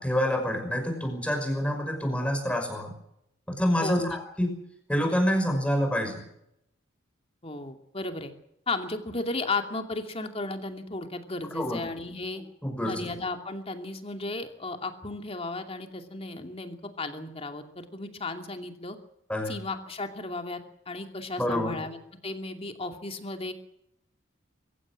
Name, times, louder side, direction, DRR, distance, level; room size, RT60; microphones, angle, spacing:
voice 1, 0.0-2.9 3.5-4.5 4.9-6.2 11.5-11.8 12.6-13.1 19.3-19.5 21.4-21.7, equal, 5° left, 4 dB, 5.8 m, -27 dB
voice 2, 3.8-4.2 7.4-8.3 8.7-12.4 12.8-19.0 19.5-20.6 20.9-22.0 22.2-23.5, left 2 dB, 30° left, 5 dB, 2.6 m, -34 dB
24.5 x 16.5 x 7.7 m, 0.77 s
head